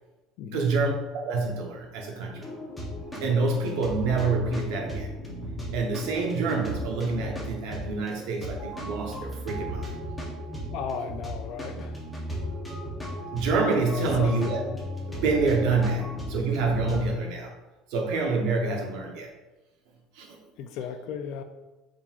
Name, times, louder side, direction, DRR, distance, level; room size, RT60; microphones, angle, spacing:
voice 1, 0.5-2.4 3.2-5.1 5.7-10.0 13.3-14.6 15.0-17.5 17.9-19.3 20.2-20.4, right 3 dB, 70° right, 1 dB, 0.8 m, -27 dB
sound 1, 2.3-17.1, equal, 5° left, 0.7 m, -36 dB
voice 2, 10.7-12.0 13.9-14.3 20.6-21.4, left 7 dB, 50° left, 8 dB, 0.3 m, -35 dB
4.3 x 3.7 x 2.4 m, 1.1 s
cardioid pair, 180°, 0 cm